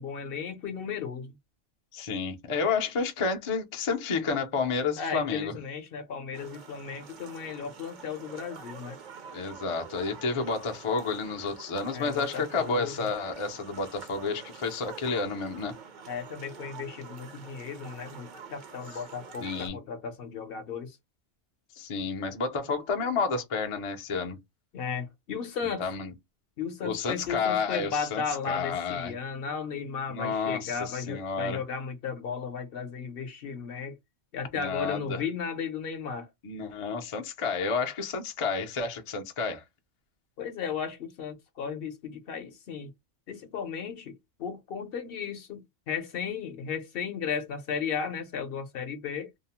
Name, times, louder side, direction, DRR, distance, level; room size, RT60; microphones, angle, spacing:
voice 1, 0.0-1.3 5.0-9.0 11.9-13.1 16.1-21.0 24.7-25.9 26.6-34.0 34.3-36.3 40.4-42.9 43.3-49.3, left 6 dB, 60° left, 0.8 m, -35 dB
voice 2, 1.9-5.5 9.3-15.7 19.4-19.8 21.8-24.4 25.8-26.1 26.8-29.1 30.1-31.6 34.5-35.2 36.4-39.6, left 4 dB, 45° left, 0.4 m, -30 dB
sound 1, 6.3-19.7, right 6 dB, 50° right, 0.6 m, -46 dB
2.7 x 2.0 x 2.8 m
omnidirectional pair, 1.2 m